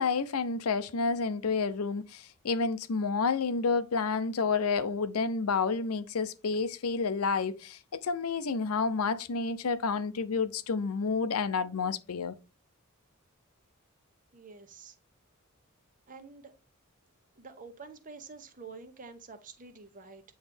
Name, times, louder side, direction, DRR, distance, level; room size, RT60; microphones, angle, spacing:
voice 1, 0.0-12.4, left 4 dB, 85° left, 0.6 m, -30 dB
voice 2, 14.3-14.9 16.1-16.5 17.4-20.2, right 4 dB, 40° right, 0.9 m, -48 dB
8.9 x 3.2 x 3.4 m
head